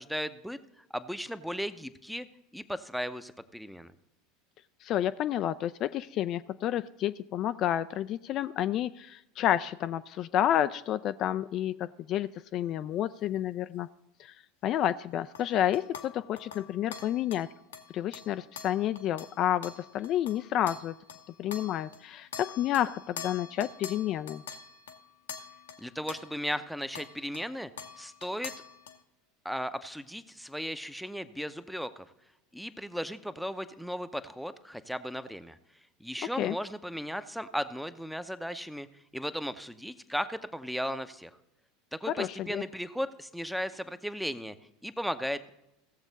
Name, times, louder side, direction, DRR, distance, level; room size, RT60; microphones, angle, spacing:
voice 1, 0.0-2.3 2.5-3.9 25.8-27.7 28.0-28.5 29.4-32.0 32.5-35.6 36.0-38.9 39.1-41.3 41.9-44.6 44.8-45.5, equal, ahead, 11 dB, 0.7 m, -36 dB
voice 2, 4.8-13.9 14.2-14.3 14.6-17.5 17.9-20.9 21.4-24.4 36.4-36.6 42.1-42.6, left 11 dB, 45° left, 12 dB, 0.3 m, -30 dB
sound 1, 15.3-22.0 22.3-26.6 26.9-27.5 27.8-29.0, left 7 dB, 75° left, 0.8 m, -45 dB
16.5 x 7.1 x 4.0 m, 0.87 s
hypercardioid pair, 80°, 0 cm